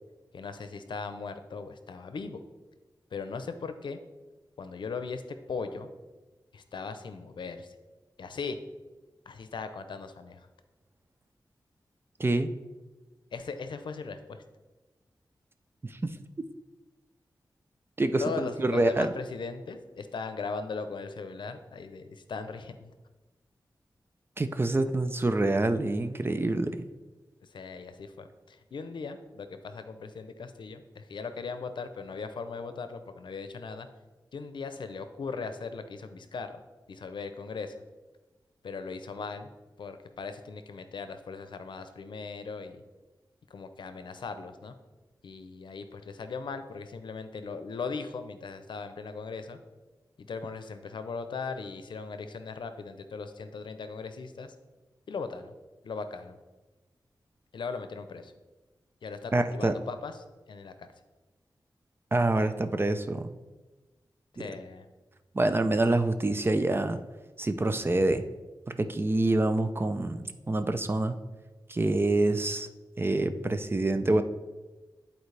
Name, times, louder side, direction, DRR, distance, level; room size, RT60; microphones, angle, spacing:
voice 1, 0.3-2.4 3.1-4.0 4.6-5.2 5.5-5.9 6.5-7.7 8.2-8.6 9.3-10.5 13.3-14.4 18.2-22.9 27.4-33.9 34.3-36.5 36.9-37.7 38.6-39.5 39.8-42.8 43.5-44.7 45.2-49.6 50.2-54.6 55.1-55.5 55.8-56.4 57.5-58.3 59.0-60.9 64.3-64.9, left 4 dB, 85° left, 9 dB, 0.6 m, -38 dB
voice 2, 12.2-12.5 15.8-16.2 18.0-19.1 24.4-26.8 59.3-59.7 62.1-63.3 65.3-67.0 67.4-68.2 68.7-71.1 71.7-72.7 73.0-74.2, right 2 dB, 30° right, 10 dB, 0.5 m, -26 dB
10.5 x 4.3 x 3.3 m, 1.2 s
wide cardioid pair, 75°, 8 cm